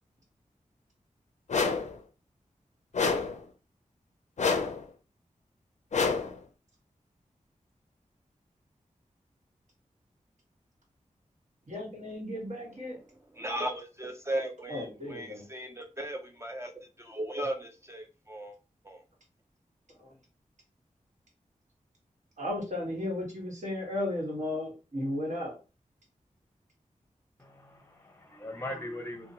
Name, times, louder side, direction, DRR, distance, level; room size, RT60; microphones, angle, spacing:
sound 1, 1.5-2.0 2.9-3.4 4.4-4.9 5.9-6.4, left 4 dB, 60° left, 0.4 m, -28 dB
voice 1, 11.7-13.0 14.7-15.4 20.0-20.1 22.4-25.6, left 1 dB, 65° right, 1.2 m, -34 dB
voice 2, 13.3-16.7 17.0-18.6 18.8-19.0, right 1 dB, 20° right, 0.4 m, -36 dB
voice 3, 27.4-29.3, left 1 dB, 15° left, 0.7 m, -40 dB
2.8 x 2.1 x 2.7 m
wide cardioid pair, 75°, 13 cm